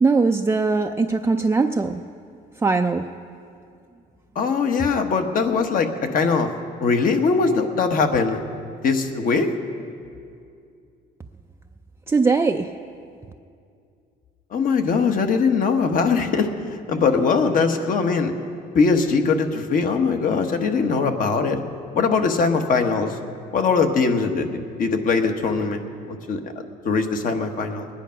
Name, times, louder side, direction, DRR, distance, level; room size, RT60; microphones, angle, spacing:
voice 1, 0.0-2.0 2.6-3.0 12.1-12.7, right 4 dB, 15° right, 4 dB, 0.4 m, -20 dB
voice 2, 4.3-6.5 6.8-8.4 8.8-9.5 14.5-16.5 16.9-18.3 18.7-21.6 21.9-23.2 23.5-25.8 26.1-26.4 26.8-27.9, left 4 dB, 55° left, 6 dB, 1.3 m, -21 dB
20.5 x 10.5 x 5.8 m, 2.4 s
cardioid pair, 110°, 17 cm